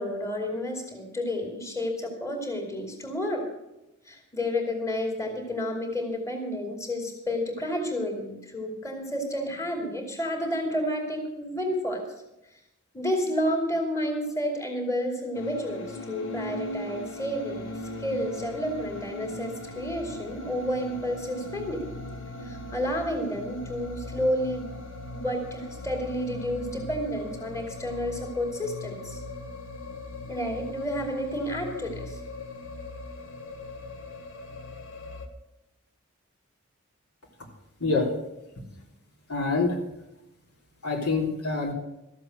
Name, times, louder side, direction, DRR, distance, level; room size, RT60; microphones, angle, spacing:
voice 1, 0.0-3.5 4.1-12.0 12.9-17.6 18.0-21.8 22.4-24.7 25.1-29.2 30.3-32.2, equal, 15° left, 3 dB, 2.7 m, -30 dB
sound 1, 15.3-35.3, left 1 dB, 60° left, 1.4 m, -39 dB
voice 2, 39.3-39.8 40.8-41.7, left 3 dB, 75° left, -1 dB, 3.3 m, -25 dB
13.5 x 7.6 x 7.7 m, 0.91 s
head